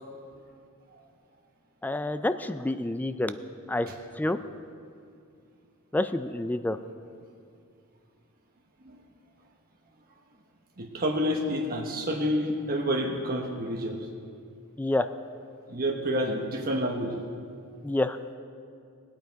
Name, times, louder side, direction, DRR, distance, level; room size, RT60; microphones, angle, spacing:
voice 1, 1.8-3.4 3.7-3.9 4.2-4.4 5.9-6.8 14.8-15.1 17.8-18.2, left 2 dB, 10° left, 11 dB, 0.3 m, -28 dB
voice 2, 10.8-14.0 15.7-17.2, equal, 45° right, 1 dB, 1.0 m, -29 dB
19.5 x 9.1 x 4.6 m, 2.4 s
head